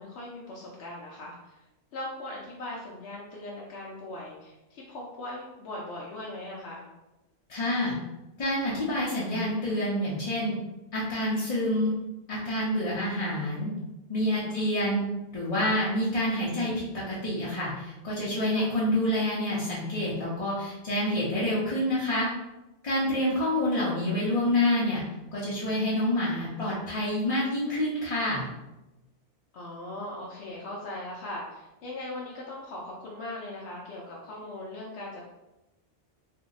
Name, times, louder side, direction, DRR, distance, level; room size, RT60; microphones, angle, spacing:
voice 1, 0.0-1.6 1.9-6.8 14.4-14.7 18.5-18.7 23.0-23.4 29.5-35.3, left 1 dB, 70° left, -4 dB, 0.8 m, -39 dB
voice 2, 7.5-7.9 8.4-10.5 10.9-12.0 12.3-13.7 14.1-15.0 15.3-22.3 22.8-25.0 25.3-28.5, left 1 dB, 40° left, -8 dB, 0.6 m, -27 dB
2.7 x 2.1 x 3.7 m, 1.0 s
omnidirectional pair, 1.2 m